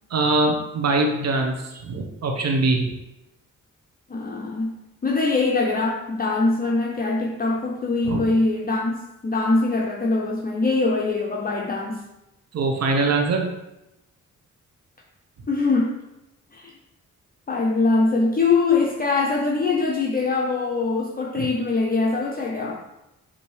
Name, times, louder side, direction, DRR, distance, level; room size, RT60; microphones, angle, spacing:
voice 1, 0.1-2.9 8.0-8.2 12.5-13.5 21.4-21.5, right 2 dB, 50° right, 2 dB, 0.8 m, -22 dB
voice 2, 4.1-12.0 15.5-16.0 16.5-16.7 17.5-22.8, left 3 dB, 30° left, -1 dB, 0.6 m, -23 dB
5.2 x 2.7 x 3.1 m, 0.93 s
supercardioid pair, 55°, 33 cm